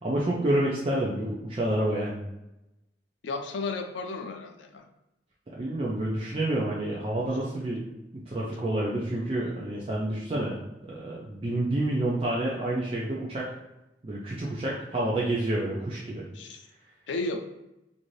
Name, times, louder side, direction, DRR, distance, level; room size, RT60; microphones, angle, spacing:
voice 1, 0.0-2.2 5.5-7.8 8.1-10.6 10.9-13.5 14.0-16.3, right 1 dB, 30° right, -5 dB, 0.4 m, -28 dB
voice 2, 3.2-4.9 16.3-16.6 17.1-17.4, left 3 dB, 85° left, 5 dB, 0.4 m, -33 dB
2.6 x 2.6 x 3.1 m, 0.92 s
head